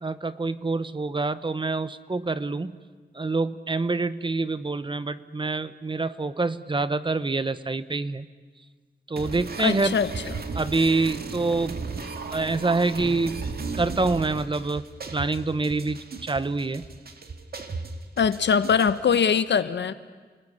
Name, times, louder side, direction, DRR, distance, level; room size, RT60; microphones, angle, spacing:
voice 1, 0.0-2.7 3.1-8.3 9.1-10.0 10.5-11.8 12.3-13.5 13.7-14.8 15.1-16.8, right 3 dB, 25° right, 14 dB, 0.9 m, -26 dB
sound 1, 9.2-19.2, right 4 dB, 60° right, 2.2 m, -36 dB
voice 2, 9.6-10.4 18.2-19.9, left 7 dB, 90° left, 12 dB, 1.1 m, -22 dB
29.0 x 20.5 x 9.9 m, 1.5 s
wide cardioid pair, 125°, 18 cm